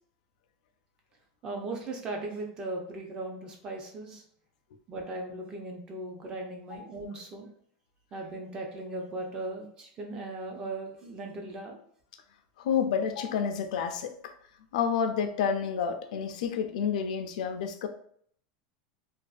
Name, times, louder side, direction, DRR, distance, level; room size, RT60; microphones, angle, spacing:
voice 1, 1.4-4.2 4.9-7.5 8.1-11.8, right 2 dB, 20° right, 2 dB, 0.4 m, -38 dB
voice 2, 12.6-14.1 14.7-17.9, left 7 dB, 75° left, 6 dB, 0.3 m, -29 dB
2.5 x 2.2 x 2.3 m, 0.62 s
supercardioid pair, 175°, 4 cm